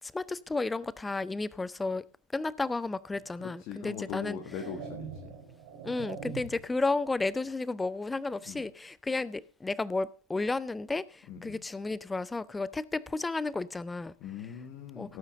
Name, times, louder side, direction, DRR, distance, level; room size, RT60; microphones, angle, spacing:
voice 1, 0.1-2.0 2.3-4.4 5.8-14.1 15.0-15.2, left 3 dB, 10° left, 0.5 m, -32 dB
sound 1, 3.1-3.3 4.0-6.8, right 6 dB, 45° right, 2.6 m, -43 dB
voice 2, 3.4-5.3 8.5-8.6 11.3-11.6 14.2-15.2, left 8 dB, 40° left, 1.7 m, -41 dB
17.0 x 8.9 x 3.8 m
figure-of-eight pair, 90°, 0 cm